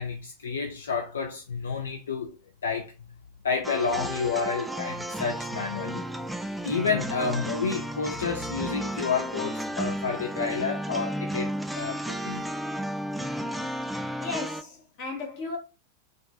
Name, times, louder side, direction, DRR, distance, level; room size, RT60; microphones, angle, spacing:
voice 1, 0.0-2.4 2.6-2.9 3.4-6.0 6.6-12.4, left 5 dB, 65° left, 0.4 m, -30 dB
sound 1, 3.6-14.6, right 1 dB, 5° right, 0.3 m, -33 dB
voice 2, 14.2-15.6, left 3 dB, 45° left, 1.5 m, -35 dB
3.8 x 2.4 x 2.6 m
figure-of-eight pair, 90°, 0 cm